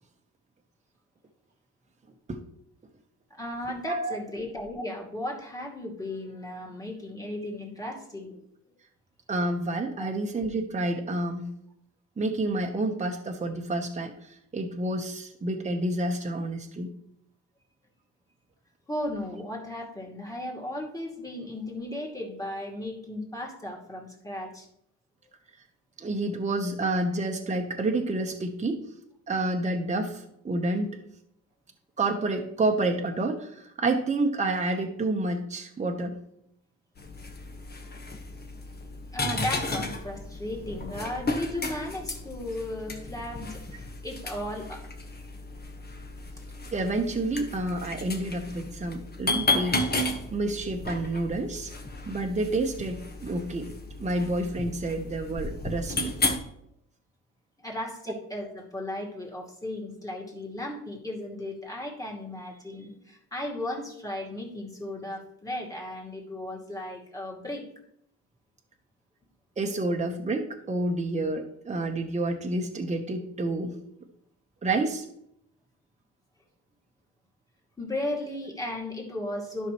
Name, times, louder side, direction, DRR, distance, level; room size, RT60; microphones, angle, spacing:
voice 1, 3.3-8.4 10.0-10.1 18.9-24.7 39.1-44.9 57.6-67.6 77.8-79.7, left 1 dB, 10° left, -2 dB, 2.5 m, -35 dB
voice 2, 9.3-11.5 12.2-16.9 26.0-28.8 29.3-30.9 32.0-36.2 46.7-49.8 50.3-51.7 52.1-53.7 54.0-56.1 69.6-73.8 74.6-75.0, right 2 dB, 25° right, 2 dB, 1.1 m, -29 dB
sound 1, 37.0-56.4, left 2 dB, 30° left, 1.4 m, -33 dB
11.5 x 5.6 x 3.1 m, 0.75 s
cardioid pair, 90°, 30 cm